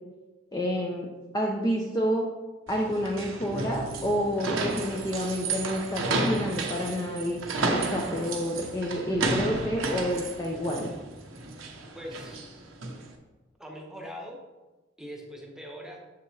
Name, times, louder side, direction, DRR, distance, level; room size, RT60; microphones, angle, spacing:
voice 1, 0.5-1.1 1.3-2.3 2.7-7.4 7.7-10.9, equal, 20° left, -1 dB, 0.6 m, -29 dB
sound 1, 2.7-13.1, right 2 dB, 75° right, 0.9 m, -32 dB
voice 2, 11.6-12.5 13.6-14.4 15.0-16.0, equal, 5° right, 0 dB, 1.0 m, -42 dB
7.3 x 5.8 x 3.2 m, 1.2 s
head